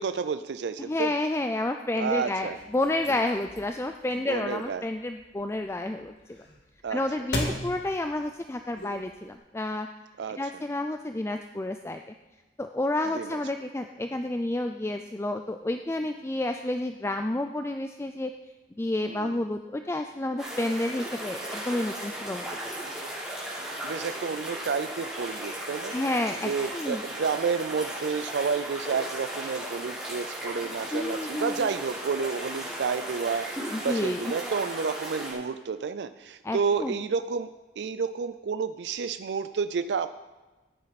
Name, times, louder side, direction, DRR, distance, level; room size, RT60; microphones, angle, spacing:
voice 1, 0.0-1.2 2.0-2.6 4.3-4.9 6.8-7.0 10.2-10.4 13.1-13.4 19.0-19.4 23.8-26.0 26.4-37.5 37.8-40.1, right 5 dB, 80° right, 11 dB, 0.4 m, -30 dB
voice 2, 0.8-6.4 6.9-9.9 10.4-12.0 12.6-18.3 18.8-22.5 25.9-27.0 30.9-31.7 33.7-34.3 36.4-37.0, left 1 dB, 15° left, 6 dB, 0.4 m, -30 dB
sound 1, 2.3-9.4, left 1 dB, 70° left, 2.0 m, -39 dB
sound 2, 20.4-35.3, right 1 dB, 5° right, 4.5 m, -36 dB
14.0 x 9.6 x 4.1 m, 1.1 s
head